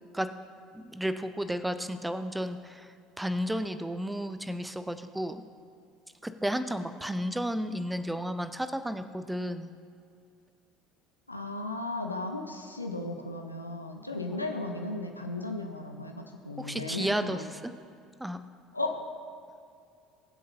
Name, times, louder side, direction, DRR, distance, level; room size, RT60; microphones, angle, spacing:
voice 1, 0.7-5.4 6.2-9.7 16.6-17.7 18.2-18.4, equal, 5° right, 10 dB, 0.6 m, -33 dB
voice 2, 11.3-17.4 18.7-19.0, left 2 dB, 85° left, 4 dB, 0.6 m, -35 dB
21.5 x 7.7 x 2.7 m, 2.4 s
figure-of-eight pair, 60°, 0 cm